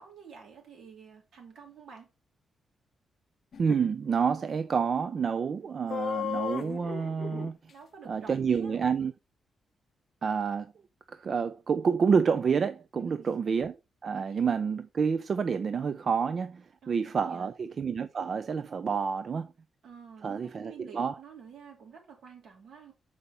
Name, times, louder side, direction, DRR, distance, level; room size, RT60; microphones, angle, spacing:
voice 1, 0.0-2.1 7.7-8.9 13.0-13.3 14.3-14.4 16.8-17.5 19.8-22.9, right 6 dB, 75° right, 2.8 m, -50 dB
sound 1, 3.5-3.8 5.9-7.5, left 8 dB, 50° left, 0.6 m, -34 dB
voice 2, 3.6-7.7 8.1-9.1 10.2-10.7 11.1-19.5 20.2-21.2, right 6 dB, 45° right, 0.5 m, -29 dB
6.7 x 4.9 x 4.2 m
cardioid pair, 120°, 0 cm